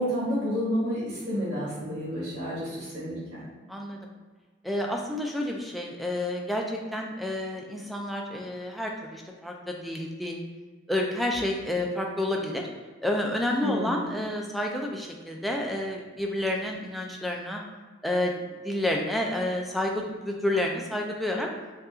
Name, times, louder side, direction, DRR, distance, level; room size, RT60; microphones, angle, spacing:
voice 1, 0.0-3.4 13.6-13.9, equal, 60° right, -9 dB, 1.3 m, -30 dB
voice 2, 3.7-4.1 4.6-10.4 10.9-12.6 13.0-17.6 18.0-18.3 18.6-21.5, left 1 dB, ahead, 0 dB, 0.3 m, -29 dB
5.4 x 2.5 x 2.4 m, 1.3 s
head